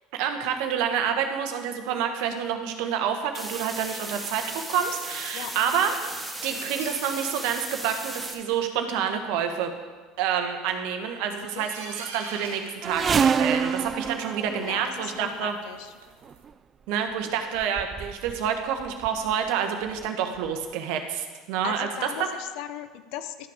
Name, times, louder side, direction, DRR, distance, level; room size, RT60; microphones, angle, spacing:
voice 1, 0.1-5.9 6.4-9.7 10.2-15.6 16.9-22.3, right 8 dB, 70° right, 6 dB, 1.1 m, -28 dB
sound 1, 3.3-8.3, right 2 dB, 10° right, 1.9 m, -36 dB
sound 2, 5.0-5.9 6.6-7.1 7.4-7.9 8.2-8.3 8.6-8.7 9.0-9.1 9.4-9.5 9.8-9.9 10.2-10.7 11.5-13.7 14.0-16.4, right 4 dB, 85° right, 1.3 m, -45 dB
sound 3, 12.8-15.3 16.3-16.5 17.3-17.4 17.6-18.5 18.8-19.3 20.0-20.1 20.4-20.5, right 6 dB, 35° right, 0.3 m, -27 dB
voice 2, 14.4-15.9 21.6-23.5, left 11 dB, 70° left, 11 dB, 0.6 m, -38 dB
12.0 x 5.9 x 4.9 m, 1.4 s
hypercardioid pair, 75°, 0 cm